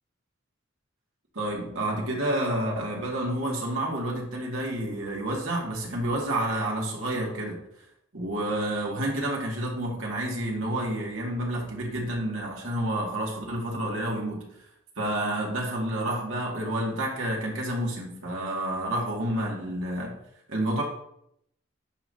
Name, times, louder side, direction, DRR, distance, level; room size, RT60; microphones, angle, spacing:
voice 1, 1.3-7.6 8.1-14.5 15.0-20.2 20.5-20.8, right 1 dB, 85° right, -2 dB, 2.1 m, -29 dB
9.8 x 5.5 x 2.8 m, 0.75 s
head